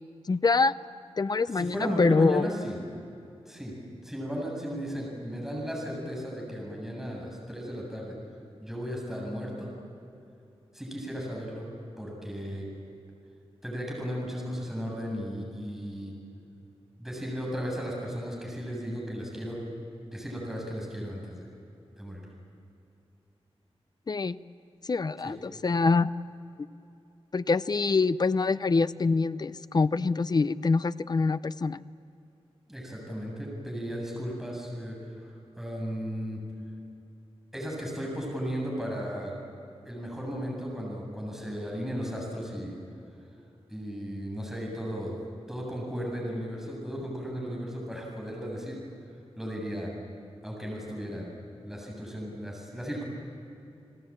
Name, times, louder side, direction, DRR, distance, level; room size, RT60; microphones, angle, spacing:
voice 1, 0.3-0.7 1.2-2.5 24.1-24.4 24.8-26.1 27.3-31.8, left 4 dB, 40° left, 14 dB, 0.6 m, -25 dB
voice 2, 1.5-2.8 3.5-3.7 4.0-8.2 8.6-9.7 10.7-11.6 12.0-12.7 13.6-16.1 17.0-19.6 20.1-21.5 22.0-22.2 25.2-25.3 32.7-35.0 35.6-36.4 37.5-39.3 39.8-42.8 43.7-45.2 45.5-48.8 49.4-49.9 50.4-51.3 51.6-53.0, equal, 5° right, -2 dB, 7.4 m, -35 dB
29.5 x 20.0 x 8.8 m, 2.8 s
wide cardioid pair, 125°, 11 cm